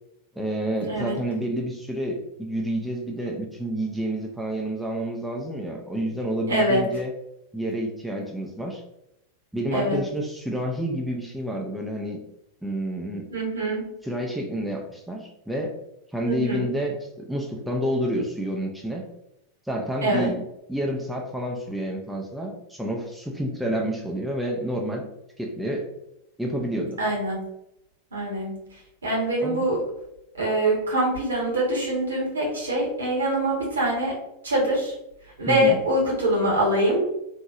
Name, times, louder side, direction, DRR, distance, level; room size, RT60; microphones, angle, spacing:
voice 1, 0.4-7.1 7.5-8.8 9.5-12.2 12.6-13.3 14.0-15.7 16.1-19.1 19.7-20.4 20.7-25.1 25.4-25.9 26.4-27.0 29.4-29.6 35.5-35.8, right 1 dB, 5° right, 0 dB, 0.4 m, -29 dB
voice 2, 0.9-1.2 6.5-6.9 9.7-10.0 13.3-13.8 16.2-16.7 20.0-20.3 27.0-27.4 28.1-28.5 29.0-29.8 30.3-34.1 34.4-34.9 35.4-37.1, right 1 dB, 70° right, -2 dB, 1.0 m, -24 dB
2.9 x 2.6 x 2.4 m, 0.83 s
figure-of-eight pair, 90°, 0 cm